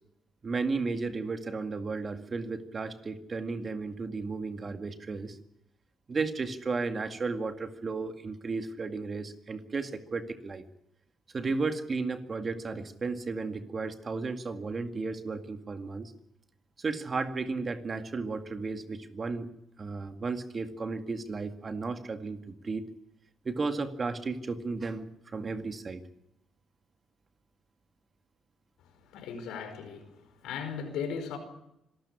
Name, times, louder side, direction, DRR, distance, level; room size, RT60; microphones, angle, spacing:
voice 1, 0.4-5.4 6.1-10.6 11.3-16.1 16.8-19.5 19.8-22.8 23.4-26.0, right 4 dB, 35° right, 8 dB, 2.0 m, -34 dB
voice 2, 28.8-31.4, left 6 dB, 90° left, 7 dB, 4.9 m, -38 dB
25.5 x 13.0 x 9.9 m, 0.84 s
cardioid pair, 90°, 0 cm